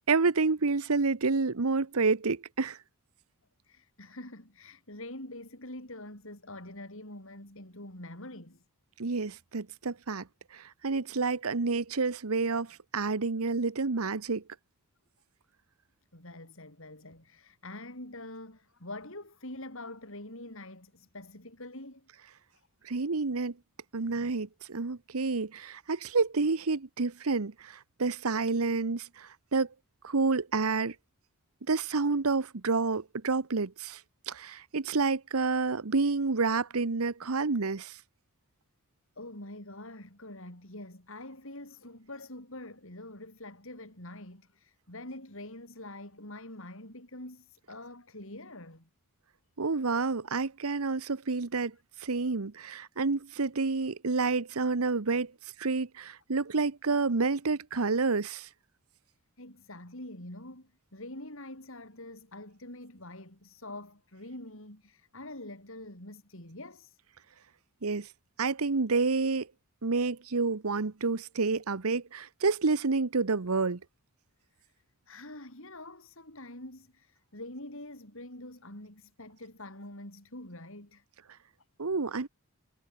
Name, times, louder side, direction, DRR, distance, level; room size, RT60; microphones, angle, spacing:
voice 1, 0.1-2.8 9.0-10.3 10.5-14.4 22.8-23.5 23.9-29.7 30.0-30.9 31.7-34.0 34.3-38.0 49.6-55.3 55.6-58.5 67.8-68.1 68.4-69.5 69.8-73.8 81.8-82.3, right 4 dB, 75° right, 1.0 m, -29 dB
voice 2, 3.6-8.6 16.1-22.1 22.5-22.7 24.0-24.3 39.2-48.9 59.4-67.0 75.1-81.0, left 1 dB, 60° left, 7.6 m, -45 dB
head